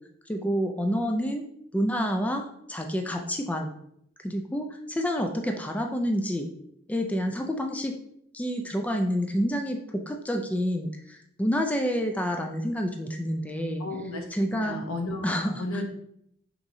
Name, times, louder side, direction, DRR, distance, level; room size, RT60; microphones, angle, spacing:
voice 1, 0.3-1.4 1.7-3.7 4.2-6.5 6.9-7.9 8.3-13.8 14.3-14.8 15.2-15.8, equal, 5° left, 3 dB, 0.3 m, -28 dB
voice 2, 13.8-15.3 15.6-15.9, left 2 dB, 85° left, 3 dB, 0.8 m, -33 dB
6.1 x 3.0 x 2.6 m, 0.72 s
head